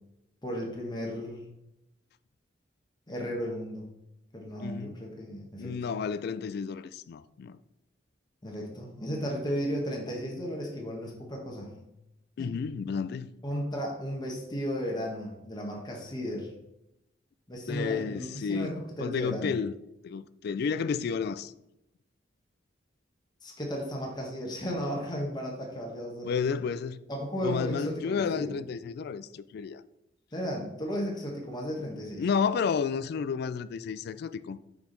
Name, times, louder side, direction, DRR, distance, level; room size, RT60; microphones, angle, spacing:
voice 1, 0.4-1.4 3.1-3.8 4.3-5.9 8.4-11.8 12.4-12.5 13.4-16.5 17.5-19.5 23.4-26.4 27.1-28.5 30.3-32.3, equal, 25° left, 1.1 m, -35 dB
voice 2, 4.6-5.0 5.6-7.6 12.4-13.3 17.7-19.7 20.0-21.5 26.3-27.0 27.4-29.8 32.2-34.6, left 6 dB, 60° left, 0.3 m, -31 dB
5.5 x 4.7 x 3.9 m
head